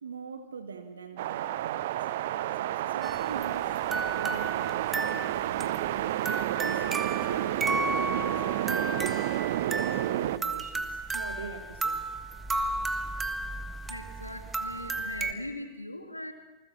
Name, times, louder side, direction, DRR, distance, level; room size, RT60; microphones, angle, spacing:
voice 1, 0.0-2.1 2.5-3.8 4.2-5.9 6.5-9.2 9.5-12.0, right 5 dB, 70° right, 8 dB, 1.5 m, -42 dB
sound 1, 1.2-10.4, right 13 dB, 55° right, 0.7 m, -30 dB
sound 2, 3.0-15.3, right 2 dB, 15° right, 1.6 m, -34 dB
voice 2, 13.9-16.3, left 1 dB, 85° left, 6 dB, 2.3 m, -40 dB
28.5 x 20.5 x 7.2 m, 1.1 s
figure-of-eight pair, 90°, 0 cm